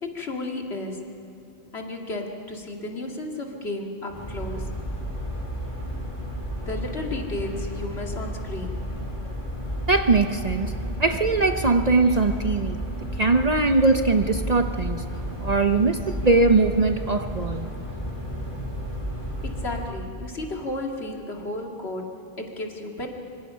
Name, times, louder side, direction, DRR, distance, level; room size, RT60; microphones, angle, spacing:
voice 1, 0.0-1.1 1.7-4.7 6.7-8.8 19.4-23.1, left 2 dB, 65° left, 1 dB, 2.5 m, -33 dB
sound 1, 4.1-19.8, equal, 25° left, 4.6 m, -32 dB
voice 2, 9.9-12.8 13.2-15.0 15.4-17.7, right 3 dB, 40° right, 7 dB, 0.8 m, -21 dB
25.5 x 25.5 x 5.6 m, 2.6 s
omnidirectional pair, 1.2 m